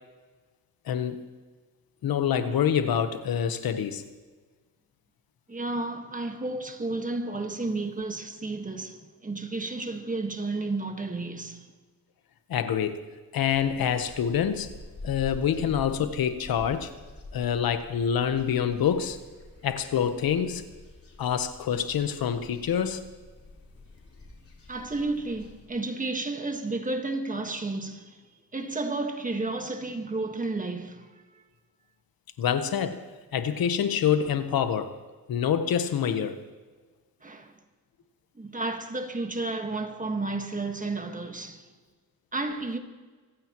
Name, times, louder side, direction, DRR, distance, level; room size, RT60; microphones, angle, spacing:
voice 1, 0.9-1.2 2.0-4.0 12.5-13.0 13.3-14.7 15.0-16.9 17.3-19.2 19.6-20.6 21.2-23.0 32.4-33.0 33.3-35.0 35.3-36.4, left 8 dB, 85° left, 1.2 m, -26 dB
voice 2, 5.5-11.7 24.7-28.2 28.5-31.1 37.2-37.5 38.3-41.7 42.3-42.8, right 2 dB, 20° right, 1.6 m, -32 dB
sound 1, 13.4-25.7, left 2 dB, 40° left, 4.2 m, -47 dB
24.5 x 15.5 x 3.1 m
cardioid pair, 105°, 35 cm